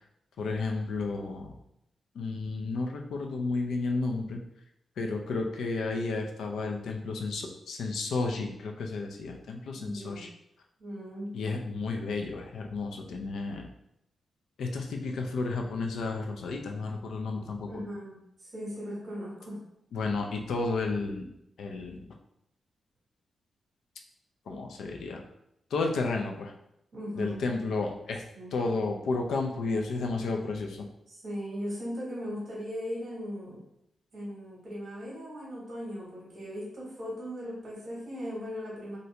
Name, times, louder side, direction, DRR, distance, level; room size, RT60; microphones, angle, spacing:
voice 1, 0.4-1.5 2.2-4.4 5.0-10.3 11.3-13.7 14.6-17.7 19.9-21.3 21.6-22.0 24.5-25.2 25.7-26.5 27.1-28.2 28.5-30.9, left 3 dB, 75° left, 2 dB, 0.4 m, -32 dB
voice 2, 9.7-10.2 10.8-11.3 17.7-19.6 26.9-27.4 28.3-28.5 31.1-33.6 34.1-39.0, equal, 40° right, -5 dB, 1.3 m, -38 dB
2.8 x 2.6 x 3.2 m, 0.78 s
wide cardioid pair, 170°, 0 cm